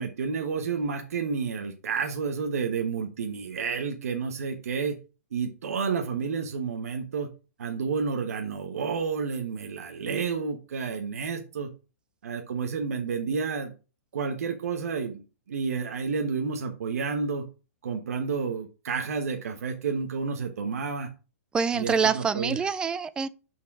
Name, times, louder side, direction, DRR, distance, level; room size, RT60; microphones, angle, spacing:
voice 1, 0.0-5.0 5.3-7.3 7.6-11.7 12.2-13.7 14.1-17.4 17.8-21.1 21.7-22.6, right 5 dB, 75° right, 1.1 m, -30 dB
voice 2, 21.5-23.3, right 5 dB, 10° right, 0.3 m, -26 dB
6.0 x 4.7 x 6.0 m
hypercardioid pair, 150°, 8 cm